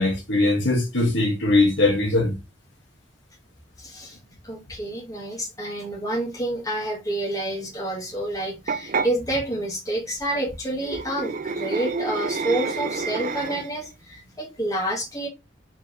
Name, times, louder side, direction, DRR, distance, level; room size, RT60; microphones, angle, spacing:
voice 1, 0.0-2.4, left 2 dB, 75° left, 1.6 m, -21 dB
voice 2, 3.8-4.2 4.4-15.3, right 1 dB, 20° left, 1.4 m, -28 dB
sound 1, 8.7-9.1 10.8-13.8, right 4 dB, 45° right, 0.4 m, -28 dB
4.6 x 3.8 x 3.1 m
head